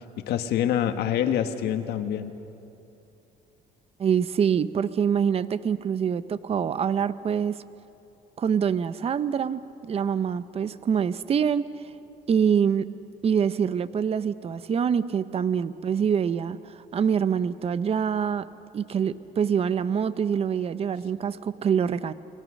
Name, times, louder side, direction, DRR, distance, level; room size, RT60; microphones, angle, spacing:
voice 1, 0.3-2.3, left 10 dB, 75° left, 7 dB, 1.6 m, -26 dB
voice 2, 4.0-7.6 8.4-11.6 12.3-12.9 13.2-16.6 16.9-18.5 18.7-22.1, right 7 dB, 35° right, 15 dB, 0.7 m, -25 dB
29.5 x 20.5 x 6.5 m, 2.8 s
cardioid pair, 110°, 17 cm